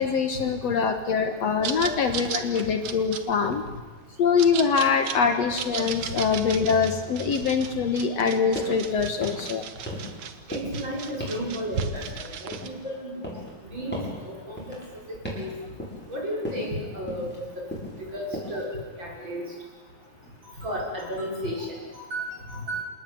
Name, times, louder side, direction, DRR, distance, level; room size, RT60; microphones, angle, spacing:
voice 1, 0.0-3.6 4.2-9.6, left 6 dB, 60° left, 7 dB, 2.4 m, -24 dB
sound 1, 1.6-12.7, right 7 dB, 60° right, 2.3 m, -36 dB
sound 2, 8.6-8.8 9.1-9.5 9.9-10.2 10.5-10.8 11.2-11.5 11.8-12.8 13.2-13.6 13.9-14.2 14.6-14.9 15.2-15.5 15.8-16.1 16.4-16.7 17.1-17.4 17.7-18.0 18.3-18.6, equal, 5° left, 7.5 m, -36 dB
voice 2, 10.5-13.1 13.7-14.0 14.2-14.8 15.1-15.5 16.1-17.6 18.0-18.7 19.0-19.4 20.6-22.8, equal, 35° right, -2 dB, 6.9 m, -33 dB
26.5 x 19.0 x 9.5 m, 1.3 s
omnidirectional pair, 3.5 m